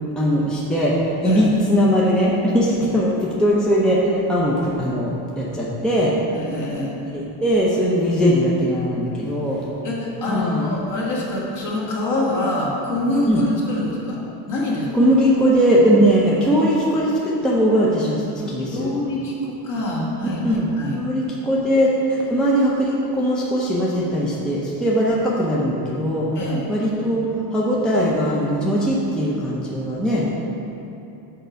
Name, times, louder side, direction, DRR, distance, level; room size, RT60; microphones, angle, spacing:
voice 1, 0.2-6.1 7.1-9.6 10.3-10.6 13.3-13.4 14.9-18.9 20.4-20.7 21.0-26.3 26.7-30.4, equal, ahead, -6 dB, 0.6 m, -20 dB
voice 2, 6.3-7.0 9.8-14.2 14.5-15.1 18.4-21.0 26.4-26.7, left 1 dB, 45° left, -4 dB, 1.7 m, -25 dB
6.8 x 4.6 x 5.1 m, 2.8 s
cardioid pair, 140°, 44 cm